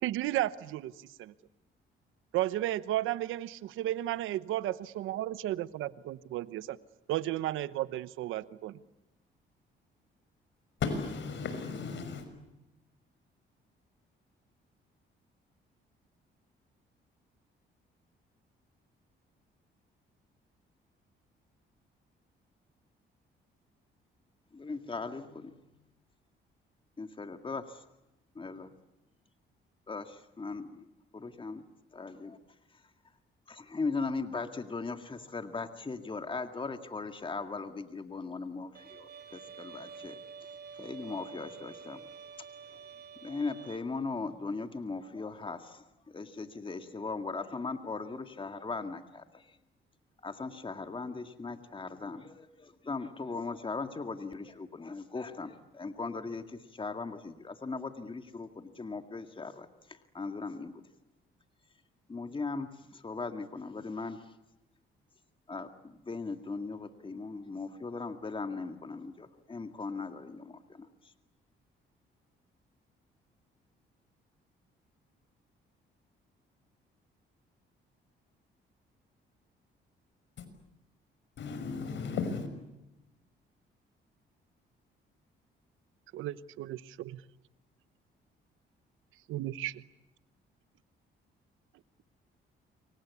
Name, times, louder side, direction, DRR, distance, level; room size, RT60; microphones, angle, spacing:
voice 1, 0.0-0.9 1.2-1.3 2.3-6.8 7.1-8.8 86.1-87.2 89.3-89.8, right 14 dB, 90° right, 16 dB, 1.0 m, -33 dB
voice 2, 10.8-12.3 80.4-80.5 81.4-82.5, left 5 dB, 70° left, 9 dB, 6.0 m, -35 dB
voice 3, 24.5-25.7 27.0-27.8 28.4-28.7 29.9-30.9 31.1-31.6 31.9-32.4 32.7-32.8 33.5-40.2 40.7-42.1 42.7-42.8 43.2-49.6 50.2-60.8 62.1-64.3 65.5-71.1, left 4 dB, 25° left, 7 dB, 2.0 m, -39 dB
Bowed string instrument, 38.7-43.8, right 6 dB, 55° right, 3.9 m, -48 dB
28.5 x 24.0 x 8.4 m, 0.94 s
cardioid pair, 90°, 20 cm